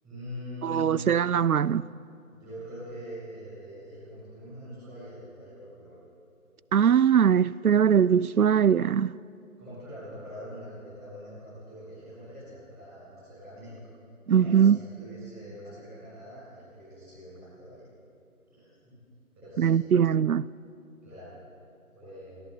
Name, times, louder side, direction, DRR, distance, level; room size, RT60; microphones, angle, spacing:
voice 1, 0.0-0.9 2.3-5.9 9.6-13.7 14.4-17.8 18.5-19.0 19.4-19.8 21.0-21.3 21.9-22.4, equal, 5° right, 6.2 m, -43 dB
voice 2, 0.6-1.9 6.7-9.2 14.3-14.8 19.6-20.5, right 8 dB, 85° right, 0.6 m, -21 dB
28.0 x 14.0 x 8.2 m
figure-of-eight pair, 175°, 43 cm